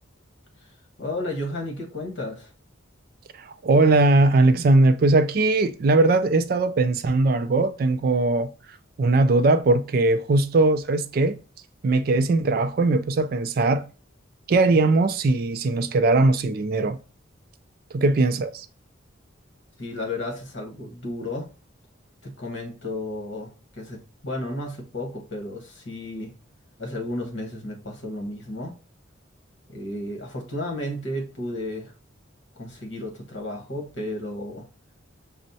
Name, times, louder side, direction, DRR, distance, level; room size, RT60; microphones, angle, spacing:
voice 1, 1.0-2.5 19.8-21.5 22.2-26.3 26.8-28.8 29.7-31.9 32.5-34.7, left 1 dB, 65° left, 1.2 m, -33 dB
voice 2, 3.4-8.5 9.0-11.4 11.8-13.9 14.5-17.0 17.9-18.7, right 2 dB, 50° right, 0.3 m, -20 dB
6.1 x 2.1 x 2.7 m
head